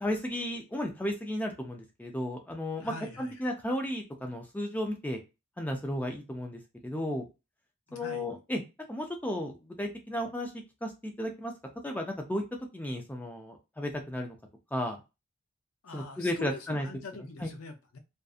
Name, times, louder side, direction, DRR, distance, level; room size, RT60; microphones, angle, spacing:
voice 1, 0.0-5.2 5.6-7.2 7.9-8.6 8.9-10.5 10.8-11.5 11.8-12.4 12.7-14.4 14.7-15.0 15.9-16.9 17.4-17.5, left 1 dB, 10° left, 0.4 m, -34 dB
voice 2, 2.8-3.3 7.9-8.3 15.8-18.0, left 3 dB, 75° left, 0.6 m, -43 dB
2.5 x 2.4 x 2.4 m
head